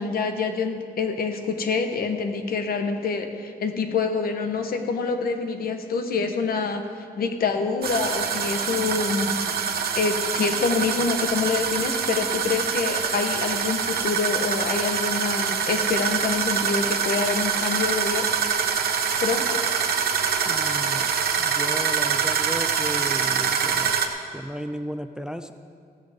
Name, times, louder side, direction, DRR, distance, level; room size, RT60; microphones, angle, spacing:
voice 1, 0.0-18.3 19.2-19.6, left 4 dB, 70° left, 6 dB, 1.1 m, -26 dB
sound 1, 7.8-24.1, right 7 dB, 70° right, 1.0 m, -25 dB
voice 2, 20.5-21.1 21.4-23.9 24.3-25.5, equal, 5° right, 9 dB, 0.3 m, -34 dB
15.5 x 13.0 x 3.6 m, 2.2 s
wide cardioid pair, 155°, 16 cm